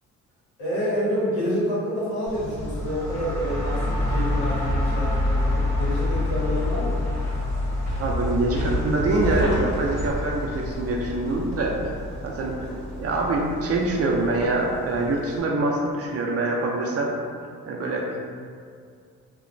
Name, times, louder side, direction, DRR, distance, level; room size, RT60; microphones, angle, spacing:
voice 1, 0.6-3.8 4.1-7.0 17.8-18.1, equal, 80° left, -9 dB, 1.0 m, -28 dB
sound 1, 2.3-15.4, right 1 dB, 60° left, 1.4 m, -35 dB
sound 2, 2.6-14.3, left 2 dB, 5° left, 0.8 m, -28 dB
voice 2, 8.0-11.7 12.2-12.7 13.0-17.1 17.7-18.2, right 2 dB, 50° right, -1 dB, 0.4 m, -24 dB
2.9 x 2.1 x 2.5 m, 2.2 s
cardioid pair, 90°, 30 cm